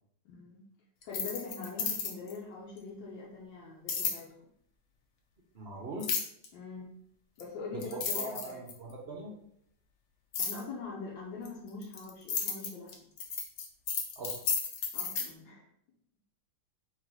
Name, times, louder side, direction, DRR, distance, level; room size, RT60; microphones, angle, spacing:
voice 1, 0.2-0.7 1.0-4.3 6.5-6.9 7.4-8.6 10.4-12.9 14.9-15.6, left 4 dB, 80° left, -5 dB, 1.5 m, -43 dB
sound 1, 1.0-2.4 3.9-4.2 6.0-6.5 7.4-7.5 7.8-8.9 10.3-10.6 11.4-15.3, left 6 dB, 60° left, 0.9 m, -33 dB
voice 2, 5.5-6.1 7.7-7.8 8.1-9.3 14.2-14.4, right 2 dB, 55° right, -3 dB, 0.7 m, -41 dB
4.0 x 2.6 x 4.6 m, 0.70 s
omnidirectional pair, 2.1 m